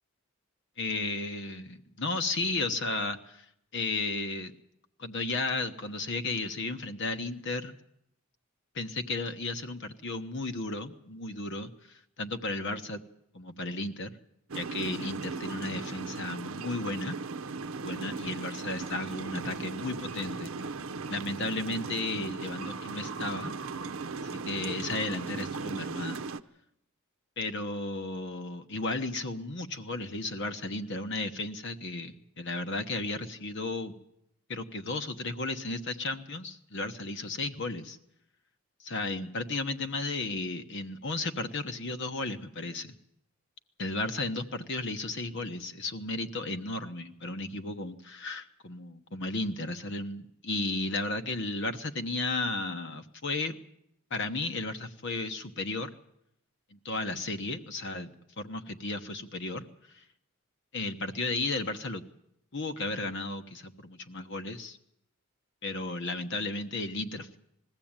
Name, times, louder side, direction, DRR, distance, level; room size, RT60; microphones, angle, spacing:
voice 1, 0.8-3.5 3.7-4.5 5.0-7.7 8.7-13.0 13.3-14.1 14.5-17.2 17.8-20.5 21.1-23.6 24.3-26.2 27.4-33.9 34.5-38.0 38.8-42.9 43.8-53.5 54.1-55.9 56.7-59.6 59.9-60.0 60.7-62.0 62.5-64.8 65.6-67.4, left 2 dB, 60° left, 8 dB, 1.2 m, -34 dB
sound 1, 14.5-26.4, right 4 dB, 70° right, 0.7 m, -37 dB
21.0 x 15.0 x 8.9 m, 0.79 s
head